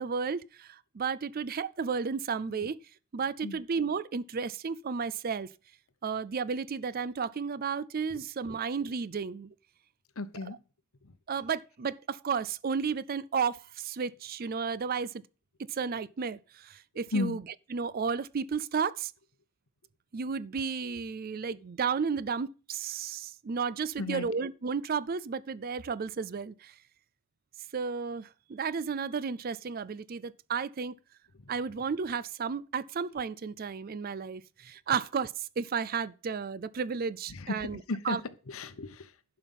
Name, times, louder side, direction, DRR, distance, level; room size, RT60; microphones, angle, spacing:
voice 1, 0.0-2.8 3.1-5.5 6.0-9.5 11.3-15.2 15.7-17.4 17.7-19.1 20.1-26.7 27.7-30.9 31.5-38.2, right 5 dB, 40° right, 0.4 m, -33 dB
voice 2, 10.2-10.6 11.0-11.1 17.1-17.4 24.0-24.3 37.3-38.2 38.5-39.1, left 3 dB, 70° left, 0.9 m, -34 dB
11.5 x 5.8 x 5.4 m
head